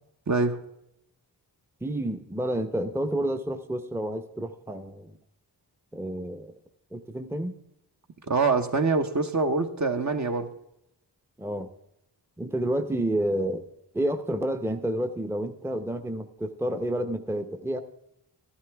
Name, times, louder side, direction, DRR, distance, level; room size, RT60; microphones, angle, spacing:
voice 1, 0.3-0.6 8.2-10.5, right 4 dB, 40° right, 1.0 m, -25 dB
voice 2, 1.8-5.1 5.9-6.5 6.9-7.6 11.4-11.7 12.4-13.6 13.9-17.8, right 1 dB, 5° right, 0.8 m, -29 dB
12.5 x 11.5 x 3.5 m
cardioid pair, 40°, 43 cm